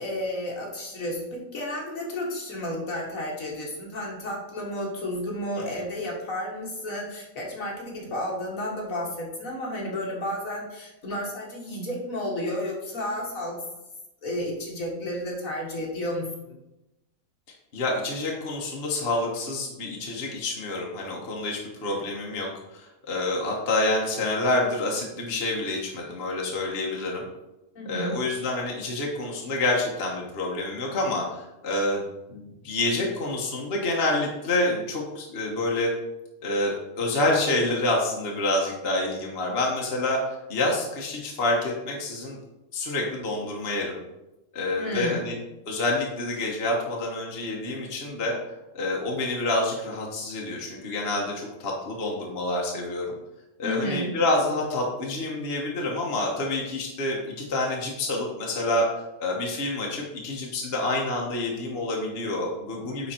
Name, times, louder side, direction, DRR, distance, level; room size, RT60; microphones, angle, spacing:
voice 1, 0.0-13.6 14.2-16.6 27.8-28.2 44.8-45.3 53.6-54.1, left 1 dB, 65° left, -1 dB, 1.9 m, -32 dB
voice 2, 17.7-27.2 27.8-35.9 36.4-40.2 40.5-42.4 42.7-44.0 44.5-45.3 45.7-48.3 48.7-53.1 53.6-58.9 59.2-63.1, left 2 dB, 45° left, -1 dB, 1.4 m, -28 dB
9.8 x 3.9 x 4.4 m, 0.96 s
omnidirectional pair, 1.6 m